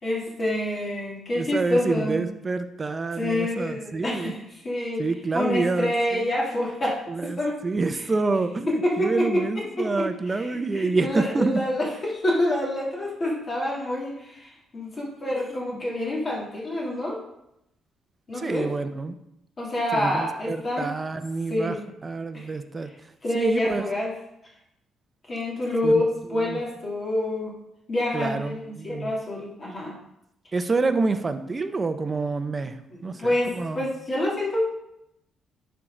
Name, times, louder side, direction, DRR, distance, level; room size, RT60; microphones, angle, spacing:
voice 1, 0.0-2.3 3.2-5.1 5.3-7.6 7.9-8.0 8.7-9.5 9.8-17.2 18.3-18.7 19.6-20.9 21.5-21.8 22.3-22.5 23.2-24.1 25.3-27.5 27.9-30.0 32.9-34.7, left 1 dB, 35° left, -4 dB, 2.9 m, -27 dB
voice 2, 1.4-4.4 5.0-6.3 7.1-11.6 15.5-15.8 18.3-19.2 19.9-21.8 22.0-22.9 23.3-23.8 25.8-26.0 26.4-26.6 28.1-29.1 30.5-33.8, right 3 dB, 30° right, 10 dB, 0.7 m, -27 dB
10.5 x 4.6 x 3.8 m, 0.83 s
cardioid pair, 90°, 0 cm